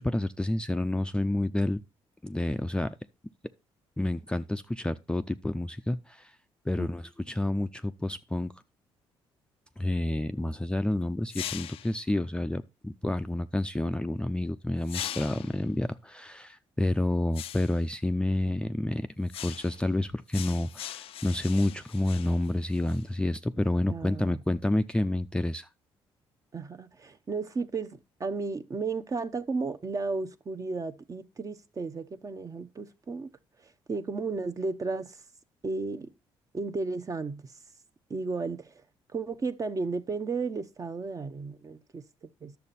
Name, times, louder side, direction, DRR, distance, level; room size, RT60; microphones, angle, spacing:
voice 1, 0.0-1.8 2.2-3.0 4.0-6.3 6.7-8.5 9.8-25.7, left 1 dB, 10° left, 0.5 m, -29 dB
sound 1, 11.3-12.0 14.8-15.6 17.3-17.8 19.3-19.9 20.3-23.1, left 12 dB, 65° left, 0.4 m, -40 dB
voice 2, 23.9-24.4 26.5-33.3 33.9-35.2 35.6-36.1 36.5-37.5 38.1-38.7 39.1-42.0 42.4-42.5, right 4 dB, 35° right, 0.8 m, -33 dB
10.5 x 6.8 x 4.1 m
cardioid pair, 85°, 10 cm